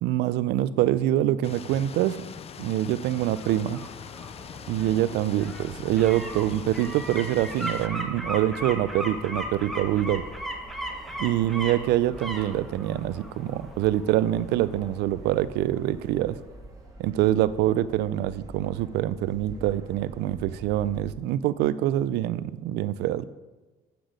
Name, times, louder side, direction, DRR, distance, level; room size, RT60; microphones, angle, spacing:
voice 1, 0.0-2.2 2.6-3.8 4.7-10.2 11.2-16.4 17.0-23.3, right 13 dB, 85° right, 16 dB, 0.4 m, -25 dB
sound 1, 1.4-7.9, left 7 dB, 35° left, 0.4 m, -42 dB
sound 2, 3.1-15.9 16.3-16.4, equal, ahead, 1.2 m, -38 dB
sound 3, 4.4-21.1, right 1 dB, 20° right, 1.6 m, -47 dB
8.1 x 6.0 x 5.0 m, 1.3 s
cardioid pair, 110°, 17 cm